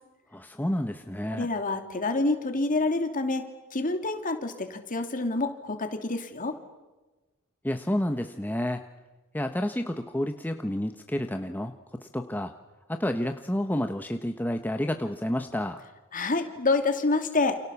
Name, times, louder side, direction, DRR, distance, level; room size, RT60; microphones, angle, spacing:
voice 1, 0.3-1.5 7.6-8.8 9.3-12.5 12.9-15.8, left 1 dB, 10° left, 6 dB, 1.0 m, -30 dB
voice 2, 1.3-6.6 16.1-17.6, left 3 dB, 40° left, 6 dB, 2.9 m, -27 dB
29.0 x 28.5 x 7.1 m, 1.2 s
head